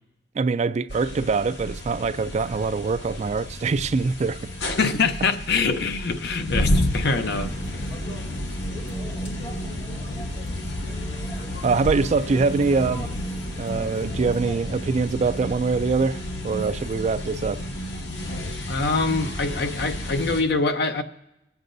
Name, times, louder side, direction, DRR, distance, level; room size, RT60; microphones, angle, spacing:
voice 1, 0.3-4.5 11.6-13.3 13.6-17.6, right 4 dB, 40° right, 0.3 m, -24 dB
sound 1, 0.9-20.4, left 1 dB, 85° left, 1.3 m, -31 dB
voice 2, 4.8-7.5 18.7-21.0, left 4 dB, 60° left, 0.7 m, -24 dB
sound 2, 7.1-14.6, equal, 30° left, 1.8 m, -40 dB
24.0 x 8.1 x 2.6 m
head